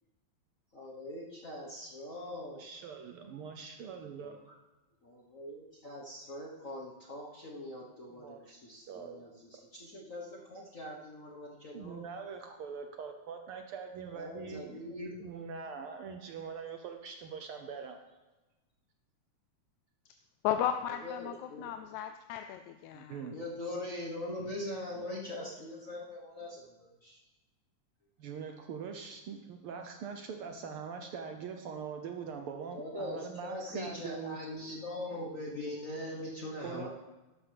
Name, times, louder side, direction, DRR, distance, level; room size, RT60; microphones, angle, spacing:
voice 1, 0.7-2.7 4.2-4.5 5.0-12.1 14.1-15.2 20.9-21.7 23.3-27.2 32.7-36.9, left 1 dB, 55° left, -3 dB, 0.9 m, -42 dB
voice 2, 2.4-4.4 8.1-8.5 8.9-9.3 11.7-14.8 15.2-18.0 22.9-23.3 28.2-34.4 36.6-36.9, right 6 dB, 80° right, 5 dB, 1.2 m, -42 dB
voice 3, 20.4-23.2, left 10 dB, 80° left, 7 dB, 1.9 m, -35 dB
12.5 x 11.5 x 3.4 m, 1.1 s
omnidirectional pair, 3.3 m